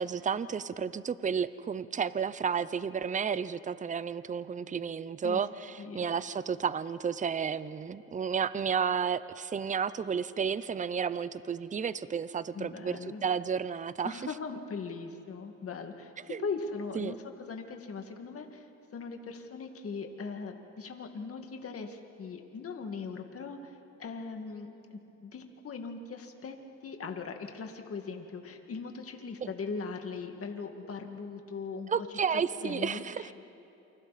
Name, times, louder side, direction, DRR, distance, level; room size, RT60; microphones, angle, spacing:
voice 1, 0.0-14.1 16.3-16.5 17.0-17.2 29.4-29.5 31.9-33.3, right 6 dB, 25° right, 16 dB, 0.6 m, -32 dB
voice 2, 12.5-13.2 14.0-16.1 16.4-17.2 17.5-18.7 18.9-26.6 26.8-33.3, left 4 dB, 50° left, 4 dB, 2.1 m, -40 dB
28.5 x 25.5 x 4.2 m, 2.9 s
cardioid pair, 90°, 30 cm